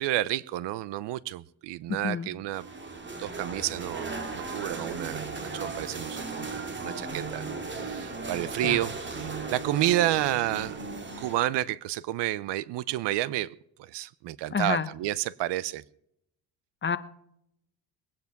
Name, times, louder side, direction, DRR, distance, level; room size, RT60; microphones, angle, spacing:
voice 1, 0.0-2.7 3.2-7.4 7.7-10.9 11.2-15.8, right 14 dB, 55° right, 0.7 m, -30 dB
voice 2, 1.9-2.3 8.6-8.8 14.5-14.9 16.8-17.0, left 6 dB, 20° left, 1.1 m, -28 dB
sound 1, 2.5-11.3, right 4 dB, 20° right, 2.2 m, -36 dB
21.5 x 9.5 x 5.9 m
cardioid pair, 110°, 50 cm